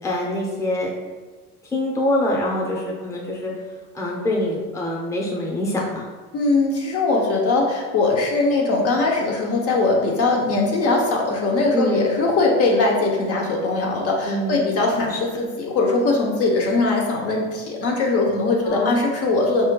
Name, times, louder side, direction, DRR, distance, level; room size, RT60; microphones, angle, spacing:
voice 1, 0.0-0.9 1.7-3.5 3.9-6.1 11.7-12.0 14.2-14.8 15.1-15.2 18.6-18.9, left 1 dB, 10° left, -3 dB, 0.8 m, -24 dB
voice 2, 6.3-19.7, left 3 dB, 45° left, -1 dB, 0.8 m, -21 dB
4.6 x 4.2 x 2.2 m, 1.3 s
supercardioid pair, 120°, 32 cm